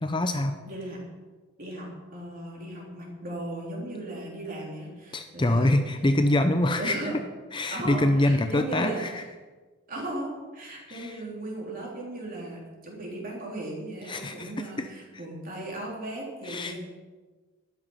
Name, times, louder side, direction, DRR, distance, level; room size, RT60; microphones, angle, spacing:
voice 1, 0.0-0.6 5.1-7.0 7.5-9.2 10.9-11.2 14.1-14.9 16.4-16.7, left 1 dB, 20° left, 7 dB, 0.6 m, -25 dB
voice 2, 0.7-1.0 1.6-5.8 6.8-7.2 7.7-9.0 9.9-16.8, right 1 dB, 40° right, -2 dB, 3.8 m, -36 dB
12.5 x 11.0 x 5.6 m, 1.3 s
head